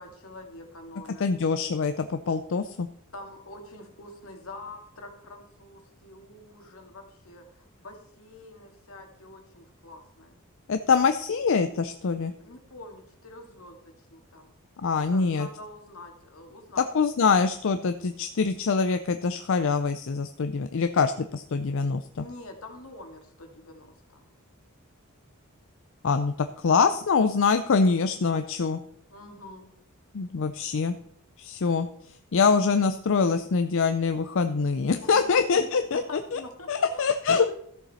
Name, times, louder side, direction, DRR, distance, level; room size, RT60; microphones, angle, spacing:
voice 1, 0.0-1.2 3.1-10.4 12.4-14.5 14.9-17.1 22.1-24.3 29.1-29.7 35.0-37.5, left 2 dB, 85° left, 3 dB, 2.0 m, -45 dB
voice 2, 1.2-2.9 10.7-12.3 14.8-15.5 16.9-22.2 26.0-28.8 30.1-31.0 31.4-31.9 32.3-36.0 36.3-36.4 36.7-37.5, left 5 dB, 65° left, 9 dB, 0.5 m, -24 dB
13.5 x 7.1 x 4.1 m, 0.69 s
head